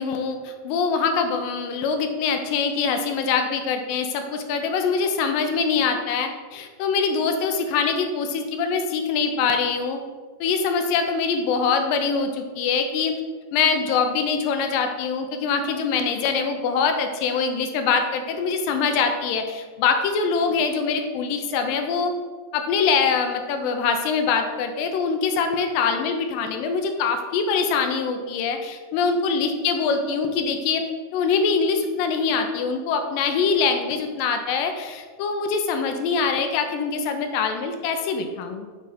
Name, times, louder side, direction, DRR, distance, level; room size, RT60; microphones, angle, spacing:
voice 1, 0.0-10.0 10.4-13.2 13.5-22.1 22.5-38.7, left 5 dB, 80° left, 6 dB, 2.2 m, -24 dB
7.6 x 3.8 x 5.0 m, 1.4 s
omnidirectional pair, 4.4 m